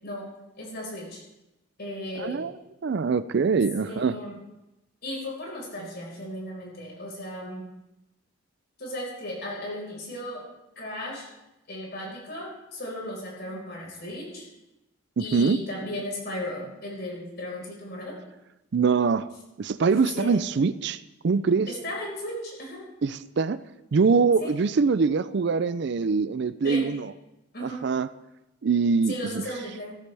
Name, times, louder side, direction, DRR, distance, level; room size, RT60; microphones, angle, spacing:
voice 1, 0.6-1.2 1.8-2.5 3.8-4.3 5.0-7.7 8.8-10.4 10.7-11.3 11.7-14.5 15.2-18.2 20.1-20.4 21.7-22.8 24.4-24.5 26.6-26.9 27.5-27.9 29.1-30.0, left 1 dB, 50° left, -2 dB, 4.8 m, -36 dB
voice 2, 2.2-2.5 2.8-4.1 15.2-15.6 18.7-19.3 19.6-21.0 21.2-21.7 23.0-23.6 23.9-27.1 27.6-28.1 28.6-29.4, right 5 dB, 55° right, 15 dB, 0.4 m, -23 dB
14.5 x 13.5 x 3.4 m, 0.94 s
head